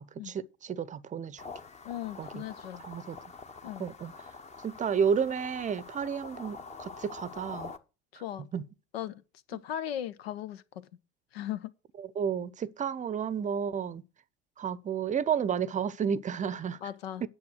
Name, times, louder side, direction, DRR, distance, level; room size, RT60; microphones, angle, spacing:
voice 1, 0.0-1.4 2.2-2.4 2.8-3.2 3.8-4.1 4.6-7.7 8.5-8.6 12.2-14.0 14.6-16.8 17.2-17.3, right 7 dB, 25° right, 0.8 m, -31 dB
sound 1, 1.4-7.8, left 4 dB, 20° left, 1.2 m, -46 dB
voice 2, 1.8-2.8 3.6-3.9 8.1-8.5 8.9-9.2 9.5-10.9 11.3-11.7 16.8-17.2, left 11 dB, 70° left, 1.0 m, -37 dB
9.6 x 7.4 x 6.3 m
figure-of-eight pair, 80°, 32 cm